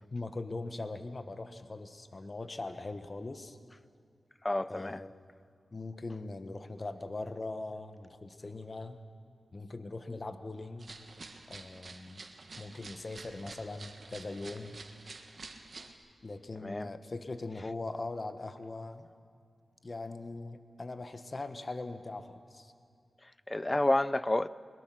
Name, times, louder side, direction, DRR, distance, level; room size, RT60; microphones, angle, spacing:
voice 1, 0.1-3.6 4.7-5.1 5.7-9.0 9.5-10.9 11.5-12.2 12.6-14.8 16.2-19.1 19.8-22.7, left 2 dB, 40° left, 1.1 m, -41 dB
voice 2, 4.4-5.0 16.6-16.9 23.2-24.5, left 1 dB, 20° left, 0.5 m, -30 dB
sound 1, 10.8-15.9, right 3 dB, 55° right, 1.6 m, -49 dB
21.5 x 21.0 x 6.2 m
wide cardioid pair, 90°, 0 cm